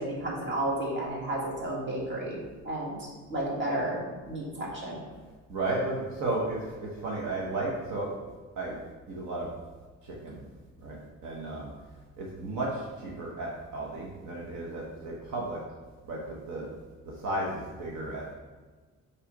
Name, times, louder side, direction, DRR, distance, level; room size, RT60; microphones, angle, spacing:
voice 1, 0.0-2.4 2.7-3.0 3.3-4.0 4.3-5.0, right 1 dB, 40° right, -4 dB, 1.7 m, -32 dB
voice 2, 5.5-8.1 8.6-8.8 9.1-9.5 10.0-10.4 10.8-11.7 12.2-15.6 16.1-16.7 17.1-18.4, right 2 dB, 75° right, -3 dB, 1.1 m, -34 dB
5.7 x 3.3 x 5.1 m, 1.3 s
cardioid pair, 135°, 29 cm